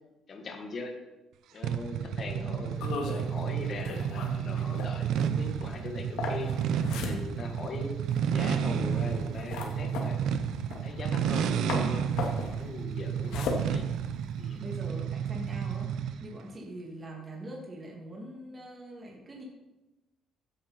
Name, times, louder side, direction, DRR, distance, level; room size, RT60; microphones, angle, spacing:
voice 1, 0.3-0.9 1.5-6.5 6.9-8.0 8.3-10.2 10.8-12.1 12.6-13.8 14.4-14.6, left 3 dB, 35° left, 3 dB, 1.6 m, -40 dB
sound 1, 1.6-16.3, right 8 dB, 65° right, 0.8 m, -31 dB
voice 2, 2.3-2.7 14.6-19.4, right 1 dB, 20° right, -2 dB, 2.6 m, -43 dB
sound 2, 2.7-11.4 11.7-14.6, left 4 dB, 85° left, 2.5 m, -37 dB
15.0 x 9.9 x 4.5 m, 1.0 s
cardioid pair, 170°, 0 cm